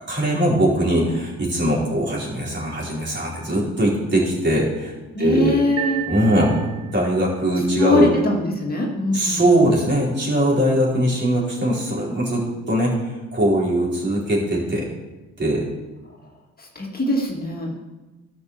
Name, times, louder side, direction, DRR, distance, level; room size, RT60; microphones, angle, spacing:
voice 1, 0.1-5.6 6.1-6.7 6.9-8.1 9.1-14.9 15.4-15.7, right 1 dB, 35° right, -4 dB, 4.8 m, -21 dB
voice 2, 5.1-6.0 7.8-9.4 16.6-17.8, left 1 dB, 30° left, -2 dB, 2.3 m, -22 dB
sound 1, 5.8-7.2, right 9 dB, 60° right, 1.8 m, -31 dB
12.5 x 6.6 x 6.8 m, 1.1 s
cardioid pair, 90°, 30 cm